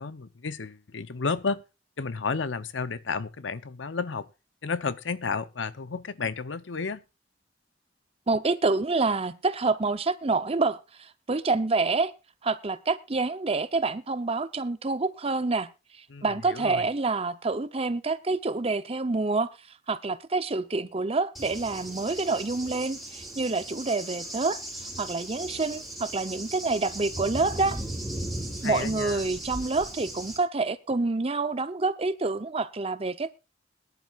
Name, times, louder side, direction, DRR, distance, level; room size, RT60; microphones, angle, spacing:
voice 1, 0.0-1.6 2.0-4.3 4.6-7.0 16.1-16.8 28.5-29.3, left 4 dB, 85° left, 0.8 m, -32 dB
voice 2, 8.3-10.8 11.3-12.1 12.4-15.7 16.2-19.5 19.9-24.6 25.0-27.8 28.6-33.3, right 3 dB, 35° right, 0.8 m, -27 dB
Cricket / Thunder, 21.3-30.4, right 1 dB, ahead, 3.2 m, -37 dB
21.5 x 11.0 x 2.5 m
head